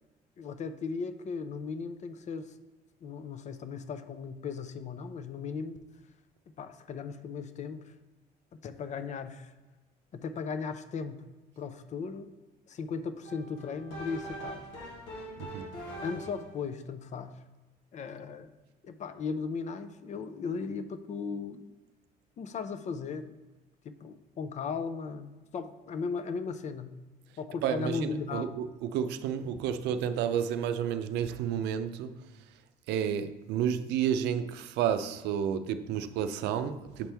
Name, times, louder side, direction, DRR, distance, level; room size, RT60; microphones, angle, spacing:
voice 1, 0.4-2.6 3.0-5.8 6.6-8.0 8.6-9.5 10.1-11.2 11.6-12.3 12.7-14.7 16.0-17.4 17.9-18.5 18.8-21.7 22.4-23.4 23.8-26.9 27.4-28.5, left 5 dB, 45° left, 0.5 m, -37 dB
sound 1, 13.2-16.6, right 1 dB, 90° left, 1.5 m, -42 dB
voice 2, 15.4-15.7 27.6-32.4 32.9-37.1, right 8 dB, 85° right, 0.5 m, -31 dB
8.0 x 4.4 x 3.4 m
cardioid pair, 110°, 17 cm